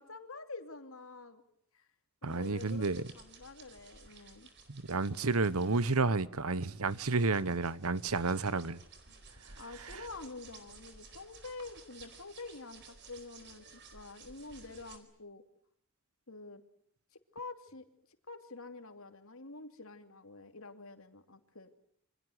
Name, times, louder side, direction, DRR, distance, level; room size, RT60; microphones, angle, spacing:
voice 1, 0.0-1.4 1.7-1.9 2.2-4.5 9.5-15.4 16.3-16.6 17.3-17.8 18.3-21.7, left 3 dB, 70° left, 2.9 m, -47 dB
voice 2, 2.2-3.0 4.7-8.8, right 3 dB, 80° right, 1.2 m, -31 dB
sound 1, 2.3-15.0, right 4 dB, 50° right, 4.5 m, -56 dB
28.0 x 25.0 x 8.1 m
head